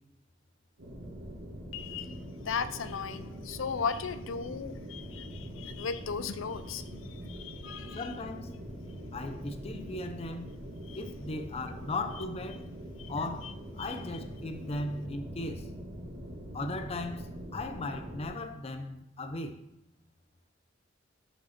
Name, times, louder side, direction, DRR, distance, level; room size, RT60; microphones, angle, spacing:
sound 1, 0.8-18.3, equal, 90° right, 2.1 m, -43 dB
voice 1, 1.7-8.1 10.9-11.0 13.0-13.3 13.8-14.1, left 6 dB, 80° left, 0.5 m, -37 dB
voice 2, 7.9-8.6 9.1-10.5 10.9-12.7 13.1-15.7 16.5-19.6, left 2 dB, 30° left, 0.6 m, -37 dB
6.7 x 4.9 x 5.8 m
head